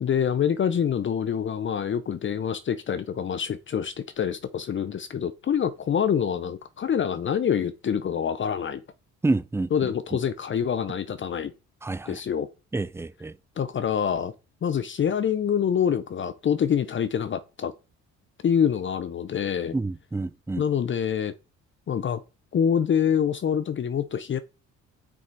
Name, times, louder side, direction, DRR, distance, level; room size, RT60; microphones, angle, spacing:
voice 1, 0.0-8.8 9.7-11.5 12.1-12.5 13.6-14.3 14.6-17.7 18.4-19.7 20.6-21.3 21.9-22.2 22.5-24.4, left 8 dB, 40° left, 0.6 m, -26 dB
voice 2, 9.2-9.9 11.8-12.2 12.7-13.4 19.7-20.6, right 2 dB, 10° right, 0.4 m, -28 dB
6.3 x 6.2 x 4.5 m
cardioid pair, 90°, 30 cm